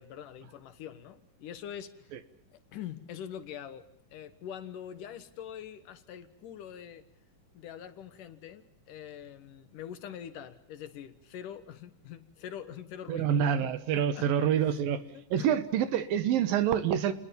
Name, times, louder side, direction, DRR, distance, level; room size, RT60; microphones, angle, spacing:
voice 1, 0.0-2.2 2.5-7.1 7.5-14.8 15.1-15.6, left 9 dB, 70° left, 12 dB, 3.0 m, -44 dB
voice 2, 13.1-15.0 15.3-17.1, right 9 dB, 90° right, 13 dB, 3.2 m, -27 dB
29.0 x 20.5 x 7.0 m, 0.71 s
omnidirectional pair, 3.9 m